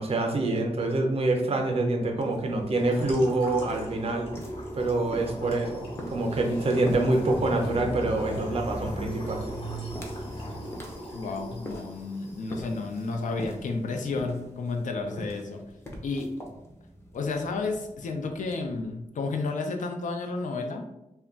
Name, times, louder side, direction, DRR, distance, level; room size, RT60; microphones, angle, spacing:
voice 1, 0.0-4.3 4.7-9.4, right 2 dB, 50° right, 2 dB, 0.5 m, -26 dB
sound 1, 2.1-19.6, equal, 20° left, 0.5 m, -44 dB
sound 2, 2.8-13.2, equal, 50° left, 0.9 m, -38 dB
voice 2, 11.1-15.6 16.0-16.3 17.1-20.8, left 3 dB, 80° left, 4 dB, 0.4 m, -31 dB
2.2 x 2.2 x 3.7 m, 0.88 s
wide cardioid pair, 140°, 13 cm